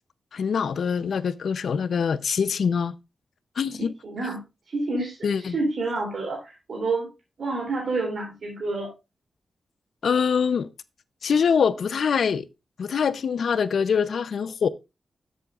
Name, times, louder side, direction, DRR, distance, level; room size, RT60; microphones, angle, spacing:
voice 1, 0.3-2.9 3.6-3.9 5.2-5.6 10.0-10.7 11.2-12.5 12.8-14.7, left 6 dB, 70° left, 0.6 m, -24 dB
voice 2, 4.0-4.4 4.7-7.1 7.4-8.9, right 3 dB, 60° right, 3.0 m, -28 dB
13.0 x 7.7 x 2.4 m
wide cardioid pair, 130°, 0 cm